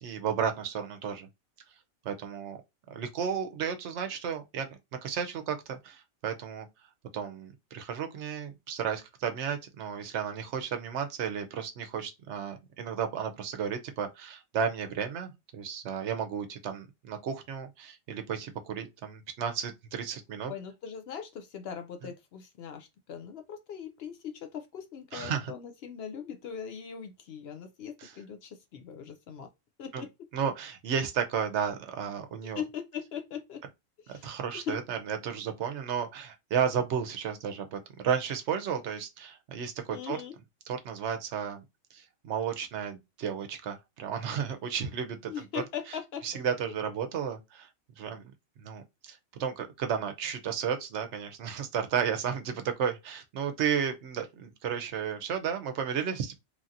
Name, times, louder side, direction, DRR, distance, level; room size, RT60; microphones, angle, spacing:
voice 1, 0.0-1.3 2.0-2.6 2.9-6.7 7.1-20.5 22.0-22.1 25.1-25.5 28.0-28.1 29.9-30.1 30.3-32.6 34.1-40.2 40.7-41.6 41.9-45.6 46.2-47.7 48.0-48.3 48.6-56.3, right 7 dB, 70° right, 0.8 m, -33 dB
voice 2, 20.5-29.5 29.8-30.1 32.6-33.6 34.1-34.3 34.5-34.8 39.9-40.3 45.3-46.2 46.6-46.7, left 8 dB, 65° left, 0.7 m, -40 dB
3.1 x 2.7 x 2.4 m
omnidirectional pair, 1.3 m